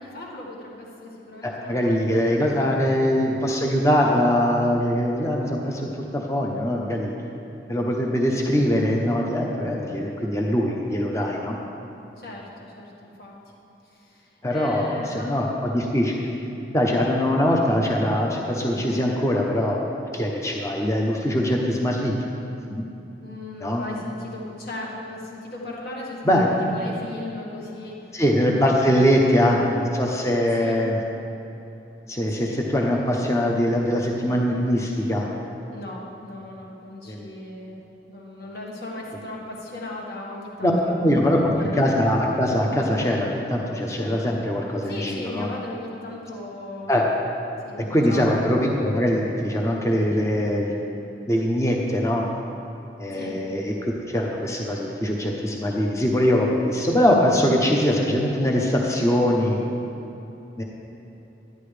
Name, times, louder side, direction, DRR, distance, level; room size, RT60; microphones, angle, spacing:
voice 1, 0.0-2.0 2.4-2.7 12.2-13.3 14.0-15.3 23.2-26.4 26.7-28.2 28.8-29.1 29.4-29.5 30.6-30.7 32.3-32.6 35.7-37.8 38.1-40.9 41.2-41.8 44.8-46.9 47.6-48.5 53.1-53.4, left 2 dB, 60° left, -3 dB, 1.7 m, -37 dB
voice 2, 1.4-5.9 6.1-7.1 7.7-11.6 14.4-16.2 16.7-19.8 20.1-22.1 22.7-22.8 23.6-23.8 26.2-26.6 28.1-31.0 32.1-35.3 37.1-37.3 40.6-40.7 41.0-45.5 46.9-47.0 47.9-50.7 51.3-52.2 53.0-59.6 60.6-60.7, equal, 15° left, 0 dB, 0.7 m, -22 dB
10.5 x 10.5 x 3.3 m, 3.0 s
head